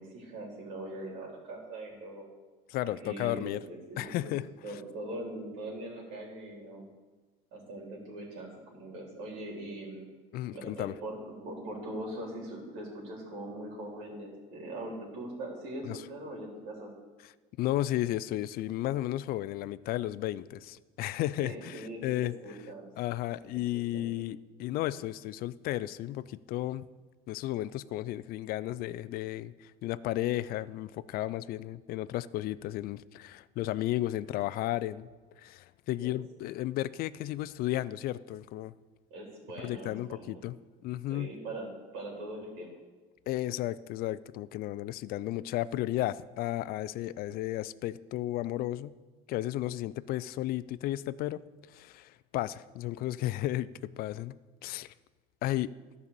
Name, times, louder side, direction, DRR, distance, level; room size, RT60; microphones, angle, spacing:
voice 1, 0.0-2.3 2.8-4.3 4.6-6.9 7.5-10.1 10.5-16.9 21.4-22.9 23.7-24.0 36.0-36.1 39.1-40.4 41.1-41.7 41.9-42.7, right 1 dB, 70° right, -2 dB, 3.6 m, -41 dB
voice 2, 2.7-3.6 4.0-4.5 10.3-10.9 15.9-16.0 17.6-22.6 23.0-26.9 27.3-35.1 35.4-38.7 39.6-40.6 40.8-41.3 43.3-48.9 49.3-51.4 51.7-54.4 54.6-54.9 55.4-55.7, left 14 dB, 50° left, 17 dB, 0.4 m, -33 dB
13.0 x 5.5 x 6.7 m, 1.3 s
cardioid pair, 130°, 20 cm